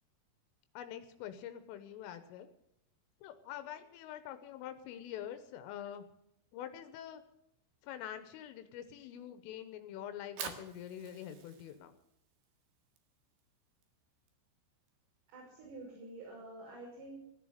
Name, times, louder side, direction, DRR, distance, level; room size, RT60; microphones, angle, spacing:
voice 1, 0.7-2.5 3.2-6.0 6.5-7.2 7.8-11.9, left 10 dB, 85° left, 9 dB, 3.4 m, -45 dB
Fire, 10.1-16.3, right 7 dB, 60° right, 3.2 m, -51 dB
voice 2, 15.3-17.2, right 2 dB, 80° right, -4 dB, 8.2 m, -48 dB
16.5 x 10.5 x 7.9 m, 0.82 s
omnidirectional pair, 5.8 m